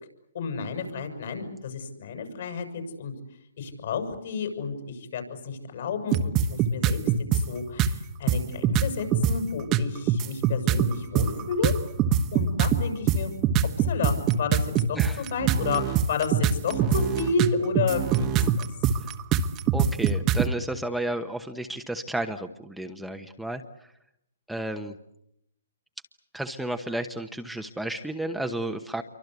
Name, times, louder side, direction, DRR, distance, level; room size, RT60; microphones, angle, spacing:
voice 1, 0.3-3.1 3.6-7.0 7.3-11.7 12.3-13.3 13.8-18.7, left 5 dB, 60° left, 6 dB, 7.4 m, -31 dB
sound 1, 6.1-7.4 7.8-7.9 8.3-9.4 9.7-20.5, right 8 dB, 25° right, 1.3 m, -23 dB
voice 2, 14.9-15.3 19.7-23.6 24.5-24.9 26.3-29.0, right 1 dB, ahead, 5 dB, 1.1 m, -32 dB
28.0 x 24.5 x 8.3 m, 0.79 s
hypercardioid pair, 145°, 0 cm